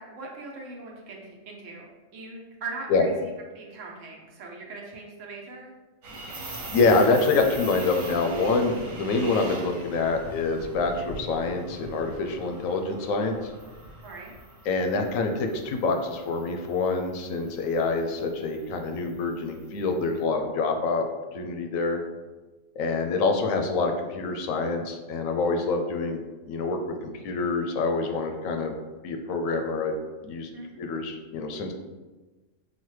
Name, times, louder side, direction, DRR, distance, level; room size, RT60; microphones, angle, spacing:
voice 1, 0.0-5.7 14.0-14.3 30.5-30.8, right 3 dB, 70° right, -2 dB, 1.2 m, -40 dB
sound 1, 6.0-20.1, right 1 dB, 90° right, 1.4 m, -42 dB
voice 2, 6.7-13.5 14.7-21.1 21.3-22.0 22.8-26.2 26.5-28.7 29.0-30.0 30.2-30.5 30.8-31.7, left 3 dB, 85° left, 5 dB, 1.0 m, -26 dB
6.2 x 2.2 x 3.1 m, 1.2 s
omnidirectional pair, 1.4 m